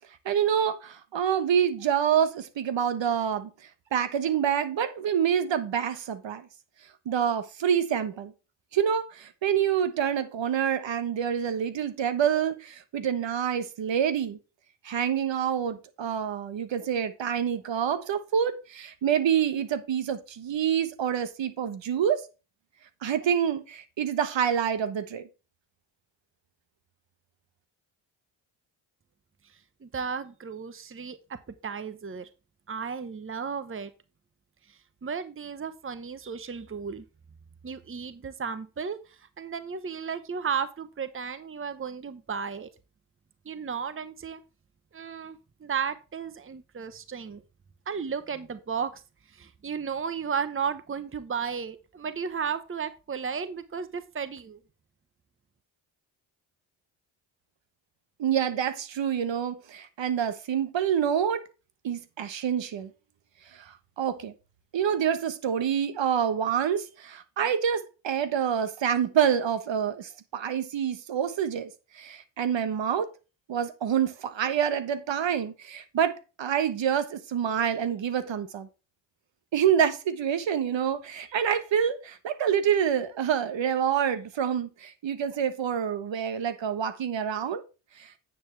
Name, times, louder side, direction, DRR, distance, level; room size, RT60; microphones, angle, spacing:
voice 1, 0.2-3.5 3.9-6.5 7.0-8.3 8.7-14.4 14.8-22.2 23.0-25.3 58.2-61.4 61.8-62.9 63.6-64.3 64.7-71.7 71.9-73.1 73.5-78.7 79.5-87.6 88.0-88.1, right 8 dB, 60° right, 1.2 m, -27 dB
voice 2, 29.5-32.3 32.7-33.9 34.7-37.0 37.6-42.7 43.4-44.4 44.9-47.4 47.9-49.0 49.3-54.6, right 6 dB, 25° right, 1.0 m, -34 dB
9.5 x 7.2 x 3.3 m
supercardioid pair, 50°, 49 cm